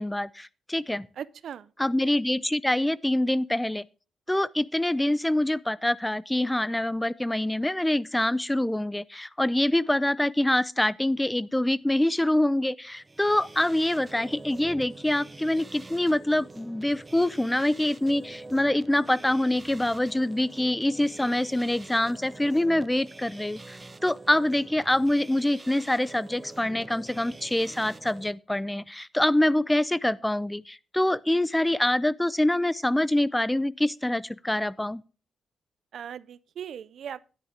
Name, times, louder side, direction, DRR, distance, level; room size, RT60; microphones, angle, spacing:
voice 1, 0.0-1.1 1.8-3.9 4.3-35.0, left 1 dB, 10° left, 0.5 m, -25 dB
voice 2, 1.2-1.7 35.9-37.2, right 8 dB, 75° right, 0.5 m, -38 dB
sound 1, 12.9-28.3, right 3 dB, 25° right, 0.7 m, -46 dB
10.0 x 10.0 x 3.4 m
supercardioid pair, 60°, 0 cm